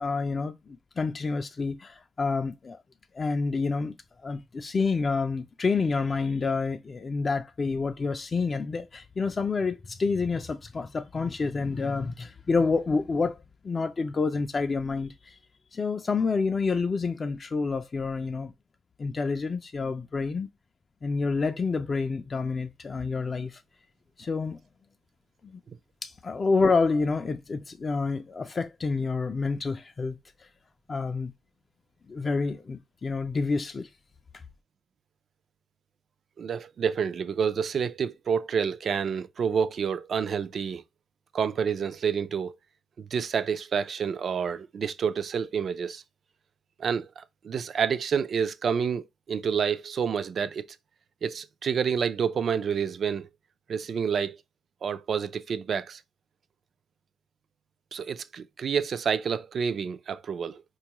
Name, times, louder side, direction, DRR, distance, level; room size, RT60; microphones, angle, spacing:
voice 1, 0.0-2.8 3.1-4.0 4.2-15.4 15.7-18.5 19.0-20.5 21.0-23.6 24.2-24.6 25.5-25.6 26.0-30.2 30.4-30.5 30.9-31.3 32.1-33.9, left 4 dB, 35° left, 0.3 m, -28 dB
voice 2, 36.4-40.8 41.3-42.6 43.0-46.0 46.8-50.6 51.2-53.3 53.7-54.4 54.8-56.0 57.9-60.6, right 7 dB, 55° right, 0.3 m, -28 dB
4.5 x 2.3 x 2.9 m
cardioid pair, 95°, 0 cm